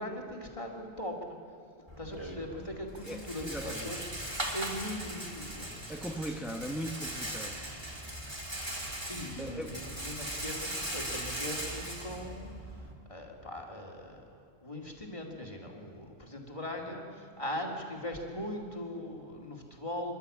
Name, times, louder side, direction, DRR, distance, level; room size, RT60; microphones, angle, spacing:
voice 1, 0.0-1.4 2.0-5.7 9.1-12.5 13.1-20.1, left 1 dB, 30° left, 1 dB, 2.6 m, -40 dB
Rattle, 1.9-12.9, right 1 dB, 25° right, 2.8 m, -39 dB
voice 2, 3.0-3.9 5.9-7.6 9.4-9.8, equal, ahead, 2 dB, 0.9 m, -39 dB
26.5 x 12.0 x 8.5 m, 2.3 s
omnidirectional pair, 1.1 m